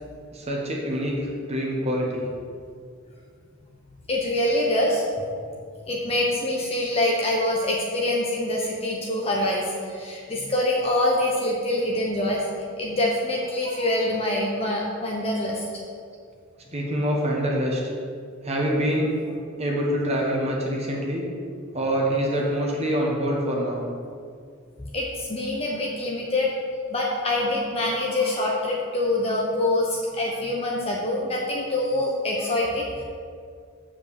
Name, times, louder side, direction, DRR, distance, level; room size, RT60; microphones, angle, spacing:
voice 1, 0.3-2.2 16.7-17.8 18.4-19.1 19.6-21.2 21.7-23.8, equal, 30° right, -2 dB, 1.3 m, -25 dB
voice 2, 4.1-5.0 5.8-12.5 12.8-15.6 24.9-26.5 26.9-33.0, left 1 dB, 30° left, -2 dB, 0.9 m, -25 dB
7.1 x 5.2 x 7.1 m, 2.2 s
head